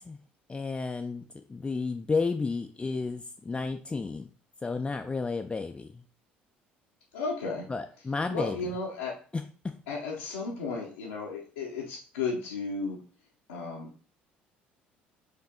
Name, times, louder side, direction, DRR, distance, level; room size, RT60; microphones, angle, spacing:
voice 1, 0.5-1.2 1.5-4.3 4.6-5.9 7.7-8.6 9.3-9.4, left 4 dB, 20° left, 6 dB, 0.4 m, -31 dB
voice 2, 7.1-7.7 8.3-9.2 9.9-13.0 13.5-14.0, left 4 dB, 80° left, -6 dB, 0.8 m, -34 dB
4.7 x 2.7 x 3.7 m, 0.40 s
figure-of-eight pair, 55°, 5 cm